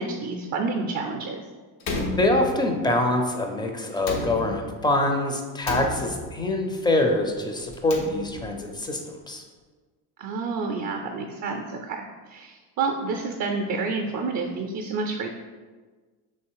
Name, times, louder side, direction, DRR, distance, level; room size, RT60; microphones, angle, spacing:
voice 1, 0.0-1.5 10.2-15.3, right 4 dB, 45° right, 2 dB, 0.5 m, -29 dB
Slam, 1.8-2.9 4.0-4.9 5.6-6.5 7.6-8.6, left 2 dB, 80° left, 0.9 m, -32 dB
voice 2, 2.2-9.4, left 1 dB, 10° left, 3 dB, 0.5 m, -25 dB
3.3 x 2.9 x 4.6 m, 1.4 s
supercardioid pair, 95°, 43 cm